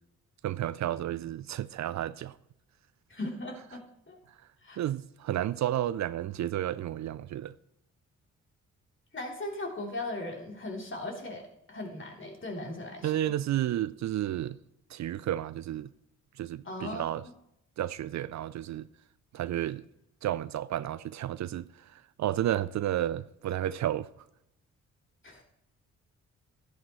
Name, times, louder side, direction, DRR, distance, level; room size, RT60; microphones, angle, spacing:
voice 1, 0.4-2.4 4.8-7.5 13.0-14.6 14.9-15.9 16.4-17.2 17.8-18.9 19.3-19.8 20.2-24.1, right 12 dB, 55° right, 0.5 m, -32 dB
voice 2, 3.1-4.2 4.6-4.8 9.1-13.2 16.6-17.1 25.2-25.4, left 2 dB, 35° left, 3.3 m, -38 dB
12.0 x 10.5 x 3.1 m
hypercardioid pair, 45°, 33 cm